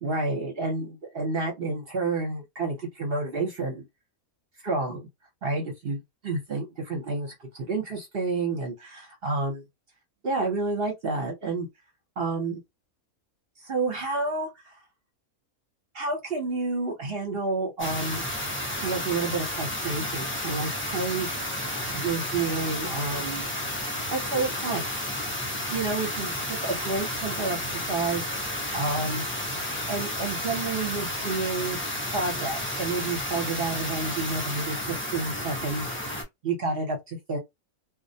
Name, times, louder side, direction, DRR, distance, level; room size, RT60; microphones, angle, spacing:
voice 1, 0.0-3.8 4.6-5.1 5.4-6.0 6.2-9.6 10.2-11.7 12.2-12.6 13.6-14.8 15.9-18.2 18.8-21.4 21.9-23.4 24.1-24.9 25.7-29.2 29.9-31.8 32.1-36.2 36.4-37.4, right 3 dB, 50° right, 0.8 m, -30 dB
sound 1, 17.8-36.2, left 1 dB, 15° left, 0.4 m, -32 dB
2.3 x 2.0 x 2.6 m
omnidirectional pair, 1.5 m